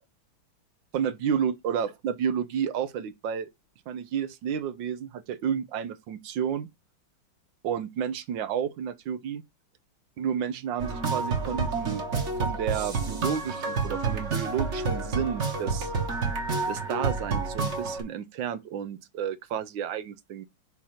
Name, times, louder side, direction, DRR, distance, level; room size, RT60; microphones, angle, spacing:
voice 1, 0.9-3.5 3.9-6.7 7.6-9.4 10.2-12.0 12.4-15.9 16.7-20.4, right 8 dB, 75° right, 1.3 m, -31 dB
sound 1, 10.8-18.0, right 4 dB, 40° right, 1.5 m, -29 dB
6.3 x 2.9 x 5.6 m
omnidirectional pair, 2.1 m